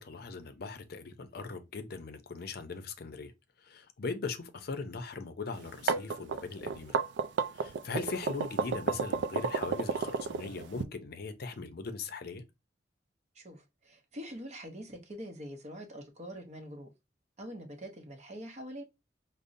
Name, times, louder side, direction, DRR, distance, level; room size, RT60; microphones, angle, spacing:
voice 1, 0.0-3.3 3.6-7.0 7.5-12.4, left 4 dB, 55° left, 0.5 m, -40 dB
sound 1, 5.6-10.8, right 5 dB, 75° right, 0.3 m, -31 dB
voice 2, 13.3-16.9 17.4-18.8, equal, 40° right, 0.8 m, -44 dB
5.2 x 2.0 x 2.6 m
head